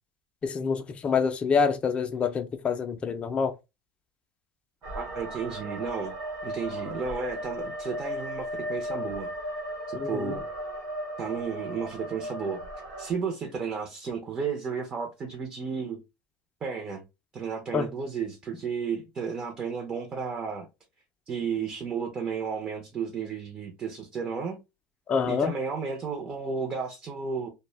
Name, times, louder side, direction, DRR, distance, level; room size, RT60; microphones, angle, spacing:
voice 1, 0.4-3.5 9.9-10.4 17.7-17.9 25.1-25.5, left 5 dB, 25° left, 0.4 m, -26 dB
sound 1, 4.8-13.1, equal, 85° right, 1.0 m, -36 dB
voice 2, 5.0-6.1 6.4-9.3 9.9-10.5 11.2-12.6 13.0-16.0 16.6-17.0 17.3-20.7 21.3-24.6 25.3-27.5, right 5 dB, 30° right, 0.5 m, -33 dB
2.1 x 2.1 x 3.1 m
supercardioid pair, 125°, 4 cm